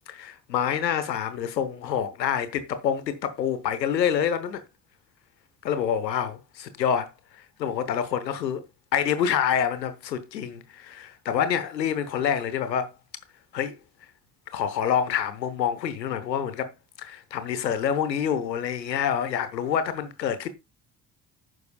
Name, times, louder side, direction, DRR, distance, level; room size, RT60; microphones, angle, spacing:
voice 1, 0.1-4.6 5.6-7.1 7.4-8.6 8.9-12.9 13.5-13.8 14.5-16.7 17.0-20.5, left 8 dB, 90° left, 1.0 m, -27 dB
11.0 x 9.3 x 2.3 m
hypercardioid pair, 50°, 49 cm